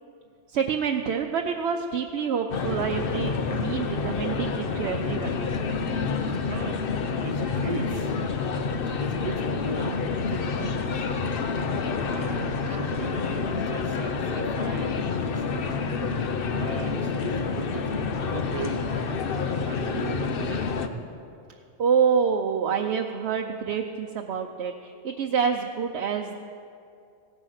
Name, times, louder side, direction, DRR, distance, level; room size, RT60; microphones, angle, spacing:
voice 1, 0.5-5.4 21.8-26.4, right 6 dB, 65° right, 3 dB, 0.9 m, -27 dB
sound 1, 2.5-20.9, left 5 dB, 55° left, 0.9 m, -28 dB
voice 2, 6.3-6.9 7.2-8.1 9.0-11.2 12.1-16.1 16.5-17.9 18.3-19.1 19.6-21.1, right 3 dB, 40° right, 8 dB, 0.6 m, -38 dB
17.0 x 9.8 x 6.5 m, 2.4 s
omnidirectional pair, 1.3 m